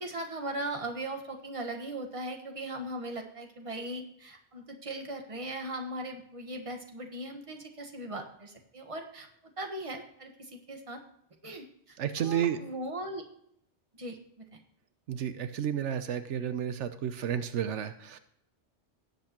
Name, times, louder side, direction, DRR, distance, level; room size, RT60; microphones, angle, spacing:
voice 1, 0.0-9.3 9.6-11.0 11.4-13.2 13.9-14.6, right 1 dB, 30° right, 4 dB, 1.4 m, -39 dB
voice 2, 12.0-12.6 15.1-18.2, right 9 dB, 85° right, 10 dB, 1.0 m, -31 dB
17.5 x 7.9 x 2.9 m, 0.72 s
omnidirectional pair, 1.2 m